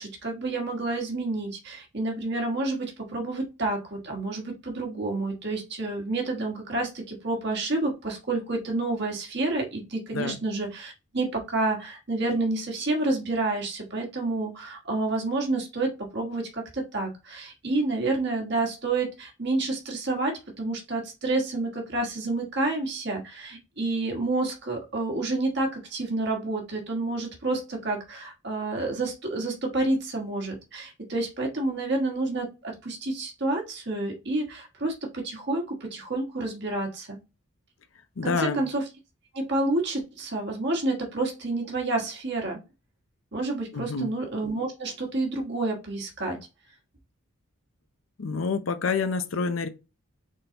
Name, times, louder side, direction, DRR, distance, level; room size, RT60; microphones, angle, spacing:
voice 1, 0.0-37.2 38.2-38.8 39.3-42.6 43.3-46.4, right 2 dB, 55° right, 1.4 m, -29 dB
voice 2, 38.2-38.6 43.7-44.1 48.2-49.7, left 4 dB, 70° left, 0.6 m, -28 dB
3.9 x 3.7 x 2.9 m
head